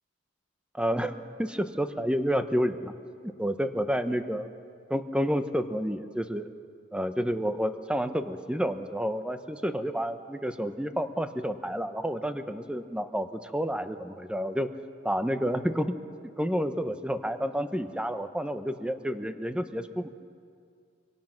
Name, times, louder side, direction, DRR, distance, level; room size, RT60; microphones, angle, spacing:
voice 1, 0.7-2.9 3.2-4.5 4.9-6.5 6.9-14.7 15.0-16.0 16.4-20.2, equal, 5° right, 8 dB, 0.9 m, -30 dB
26.0 x 25.0 x 6.0 m, 2.3 s
head